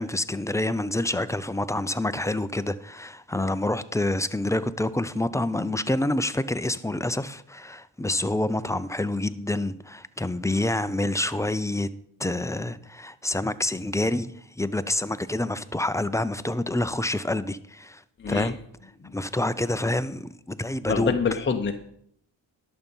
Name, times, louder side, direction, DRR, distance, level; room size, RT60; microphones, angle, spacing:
voice 1, 0.0-11.9 12.2-18.0 18.3-18.6 19.1-21.1, left 1 dB, 5° left, 0.5 m, -27 dB
voice 2, 18.2-18.5 19.0-19.1 20.9-21.7, left 5 dB, 25° left, 0.8 m, -26 dB
11.5 x 6.9 x 5.5 m
cardioid pair, 75°, 45 cm